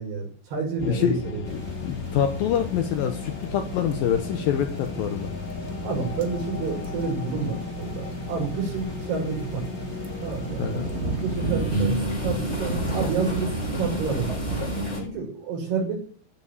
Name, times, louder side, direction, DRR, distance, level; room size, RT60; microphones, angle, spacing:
voice 1, 0.0-1.4 5.8-9.6 10.2-12.0 12.2-14.4 15.0-16.1, right 5 dB, 90° right, -1 dB, 7.6 m, -29 dB
voice 2, 0.8-1.2 1.5-5.3 10.6-10.9, left 9 dB, 70° left, 7 dB, 2.5 m, -26 dB
sound 1, 0.8-15.1, left 3 dB, 55° left, 2.7 m, -35 dB
sound 2, 1.5-14.9, right 4 dB, 40° right, 0.9 m, -35 dB
sound 3, 8.6-8.9 9.4-10.7 11.1-15.0, equal, 20° left, 3.2 m, -31 dB
15.0 x 7.6 x 7.0 m, 0.42 s
omnidirectional pair, 4.6 m